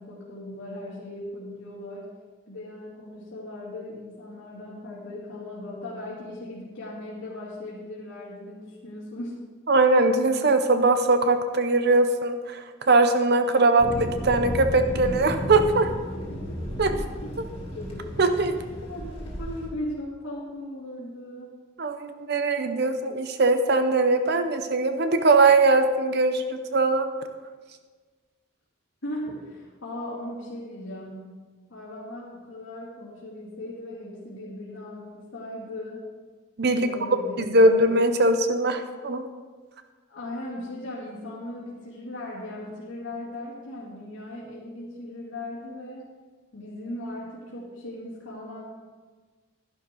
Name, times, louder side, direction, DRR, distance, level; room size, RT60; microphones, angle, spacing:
voice 1, 0.0-2.1 2.5-9.4 16.3-16.5 16.9-17.3 17.7-17.9 18.9-21.5 29.0-31.3 31.7-36.0 36.8-38.0 40.1-46.1 46.5-48.6, left 1 dB, 75° left, -8 dB, 2.6 m, -38 dB
voice 2, 9.7-15.9 16.8-16.9 18.2-18.6 21.8-27.1 36.6-36.9 37.4-39.3, right 2 dB, 50° right, 8 dB, 0.7 m, -21 dB
Thunder, 13.8-19.7, equal, 30° left, 2.3 m, -33 dB
11.5 x 11.0 x 3.8 m, 1.4 s
head